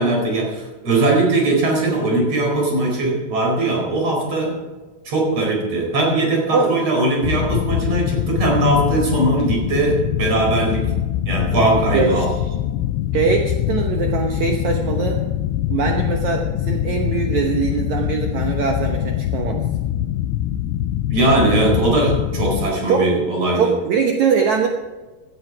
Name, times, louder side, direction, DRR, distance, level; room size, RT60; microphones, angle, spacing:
voice 1, 0.0-4.5 5.1-10.9 11.3-12.3 21.1-23.7, right 2 dB, 40° right, 0 dB, 5.3 m, -19 dB
voice 2, 6.5-6.9 11.9-12.3 13.1-15.2 15.7-19.6 22.9-23.3 23.5-24.7, right 6 dB, 75° right, 2 dB, 1.7 m, -21 dB
sound 1, 7.2-22.7, left 12 dB, 90° left, 2.7 m, -23 dB
16.5 x 12.0 x 4.7 m, 1.2 s
omnidirectional pair, 4.8 m